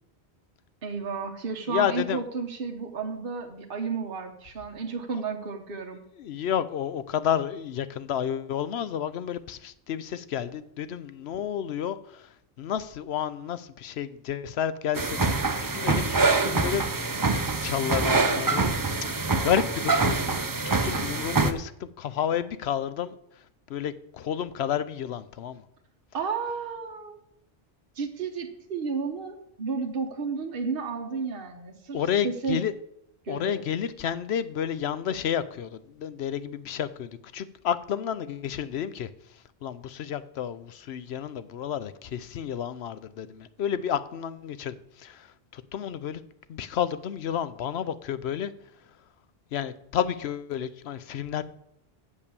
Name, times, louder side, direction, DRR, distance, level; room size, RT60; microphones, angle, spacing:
voice 1, 0.8-6.0 26.1-27.1 27.9-32.6 33.2-33.6, right 5 dB, 60° right, 2 dB, 1.1 m, -32 dB
voice 2, 1.7-2.2 6.1-15.2 15.7-16.8 17.6-18.7 19.0-20.2 20.6-23.2 23.7-25.6 31.9-32.7 33.3-46.2 46.5-48.5 49.5-51.4, left 9 dB, 75° left, 14 dB, 0.9 m, -31 dB
sound 1, 14.9-21.5, right 3 dB, 25° right, 0.5 m, -25 dB
8.3 x 6.9 x 6.9 m, 0.74 s
omnidirectional pair, 1.1 m